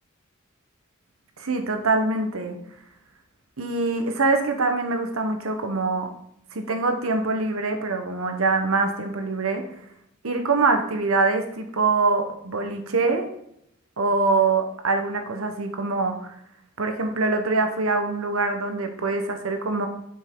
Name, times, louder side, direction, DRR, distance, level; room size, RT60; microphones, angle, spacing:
voice 1, 1.4-2.6 3.6-6.1 6.5-9.6 10.2-13.3 14.0-16.3 16.8-19.9, right 3 dB, 90° right, 6 dB, 1.0 m, -24 dB
9.4 x 5.3 x 3.7 m, 0.75 s
head